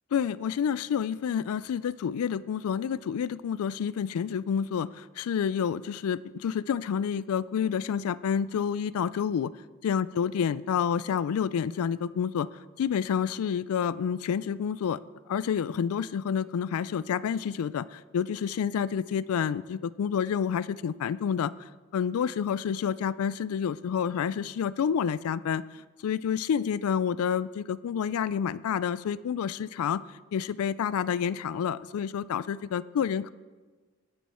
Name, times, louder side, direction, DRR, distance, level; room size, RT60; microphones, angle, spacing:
voice 1, 0.1-9.5 9.8-12.5 12.8-15.0 15.3-30.0 30.3-33.3, left 7 dB, 85° left, 19 dB, 0.3 m, -29 dB
10.5 x 9.3 x 4.3 m, 1.3 s
head